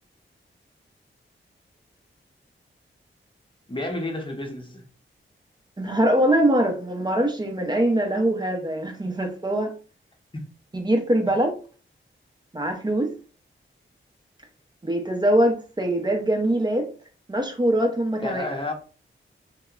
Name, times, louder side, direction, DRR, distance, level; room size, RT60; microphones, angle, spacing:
voice 1, 3.7-4.8 10.3-10.4 18.2-18.7, left 2 dB, 25° left, 0.7 m, -30 dB
voice 2, 5.8-9.7 10.7-11.5 12.5-13.1 14.8-16.9 17.3-18.4, right 1 dB, 20° right, 0.6 m, -23 dB
2.8 x 2.1 x 2.3 m
wide cardioid pair, 65°, 21 cm